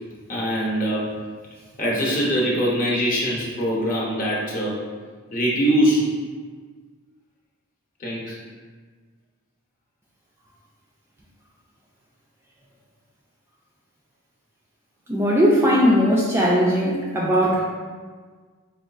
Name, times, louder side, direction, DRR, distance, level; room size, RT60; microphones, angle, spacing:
voice 1, 0.3-1.1 1.8-4.8 5.3-6.1 8.0-8.4, equal, 40° left, -5 dB, 0.8 m, -22 dB
voice 2, 15.1-17.6, equal, 10° right, -4 dB, 0.3 m, -19 dB
4.3 x 2.3 x 2.4 m, 1.5 s
head